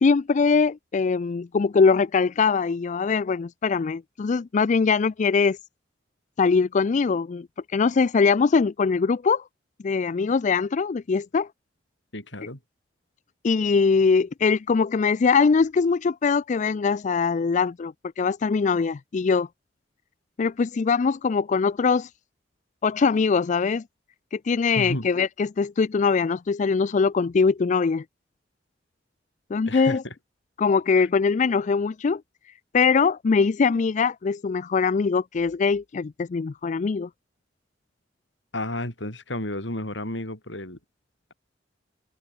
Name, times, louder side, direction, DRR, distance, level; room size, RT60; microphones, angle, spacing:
voice 1, 0.0-5.6 6.4-7.5 7.7-9.4 9.8-11.5 13.4-19.5 20.4-22.1 22.8-23.8 24.3-28.0 29.5-30.0 30.6-32.2 32.7-37.1, left 5 dB, 40° left, 0.4 m, -22 dB
voice 2, 12.1-12.6 24.8-25.1 29.6-30.1 31.0-31.1 38.5-40.8, left 1 dB, 85° left, 7.4 m, -32 dB
head